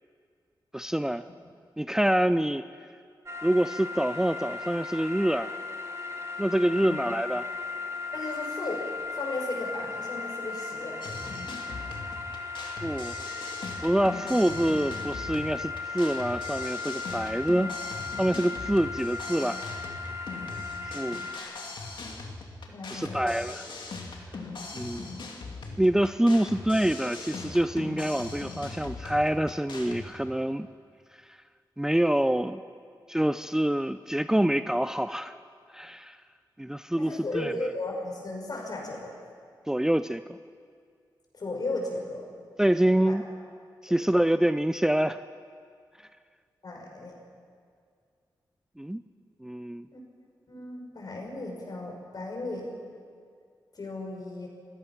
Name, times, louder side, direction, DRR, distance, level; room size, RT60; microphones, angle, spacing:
voice 1, 0.7-1.3 1.8-2.6 3.4-5.5 6.4-7.5 12.8-13.2 13.8-17.7 18.2-19.6 20.8-21.2 22.9-23.7 24.7-25.1 25.8-30.7 31.8-32.6 33.1-35.4 35.7-36.2 36.6-37.5 39.7-40.4 42.6-43.2 43.8-45.2 48.8-49.0 49.4-49.9, right 1 dB, 5° right, 11 dB, 0.5 m, -26 dB
sound 1, 3.3-21.4, left 4 dB, 35° right, 2.4 m, -37 dB
voice 2, 8.1-8.9 9.1-11.0 22.7-23.3 37.0-39.1 41.3-42.3 43.0-43.1 43.9-44.0 46.6-47.1 49.9-50.0 50.5-52.7 53.7-54.5, left 2 dB, 55° left, 0 dB, 6.0 m, -35 dB
sound 2, 11.0-30.1, left 3 dB, 75° left, 2.7 m, -40 dB
27.5 x 16.5 x 6.0 m, 2.2 s
wide cardioid pair, 80°, 8 cm